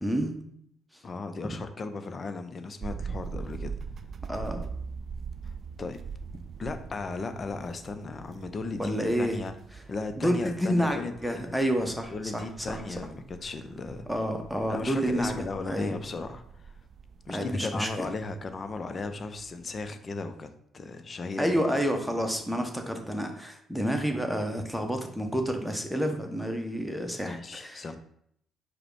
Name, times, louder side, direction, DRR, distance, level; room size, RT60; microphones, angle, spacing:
voice 1, 0.0-0.4 4.3-4.7 8.8-9.4 10.2-12.8 14.1-15.9 17.3-18.1 21.4-27.8, equal, ahead, 4 dB, 0.9 m, -29 dB
voice 2, 1.0-3.7 5.4-5.5 5.8-6.0 6.6-9.5 9.9-11.7 12.1-14.1 14.7-16.8 17.3-20.5 20.7-21.6 27.2-28.0, left 3 dB, 40° left, 9 dB, 0.5 m, -36 dB
sound 1, 2.8-19.9, right 5 dB, 50° right, 0.3 m, -43 dB
4.9 x 2.1 x 4.6 m, 0.71 s
hypercardioid pair, 45°, 0 cm